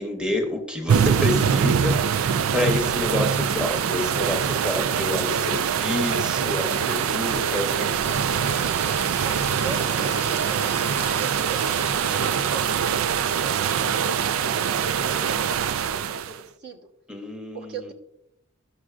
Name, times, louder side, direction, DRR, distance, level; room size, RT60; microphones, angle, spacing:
voice 1, 0.0-7.9 12.1-12.2 17.1-17.9, left 1 dB, 5° right, 3 dB, 0.9 m, -29 dB
sound 1, 0.9-16.4, right 7 dB, 85° right, 0.4 m, -23 dB
sound 2, 7.4-13.6, left 4 dB, 10° left, 0.5 m, -43 dB
voice 2, 8.8-16.9 17.5-17.9, right 4 dB, 55° right, 1 dB, 1.0 m, -40 dB
13.0 x 6.2 x 2.4 m, 0.81 s
head